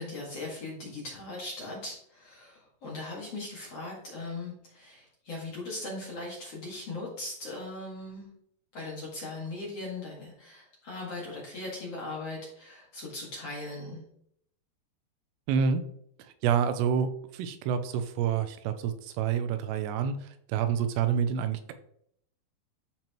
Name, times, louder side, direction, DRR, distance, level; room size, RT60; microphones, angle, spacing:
voice 1, 0.0-8.3 8.7-14.1, left 2 dB, 45° left, -4 dB, 2.3 m, -39 dB
voice 2, 15.5-15.8 16.4-20.2 20.5-21.7, right 7 dB, 85° right, 9 dB, 2.7 m, -28 dB
13.0 x 4.5 x 3.0 m, 0.70 s
omnidirectional pair, 4.9 m